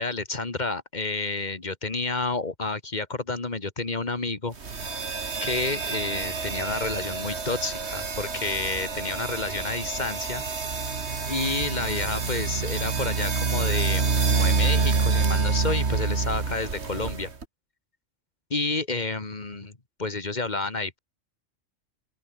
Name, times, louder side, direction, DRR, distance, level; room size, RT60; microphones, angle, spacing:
voice 1, 0.0-4.6 5.4-10.4 11.3-17.3 18.5-21.0, left 3 dB, 35° left, 2.3 m, -30 dB
sound 1, 4.6-17.5, right 4 dB, 60° right, 2.3 m, -27 dB
open air
omnidirectional pair, 1.3 m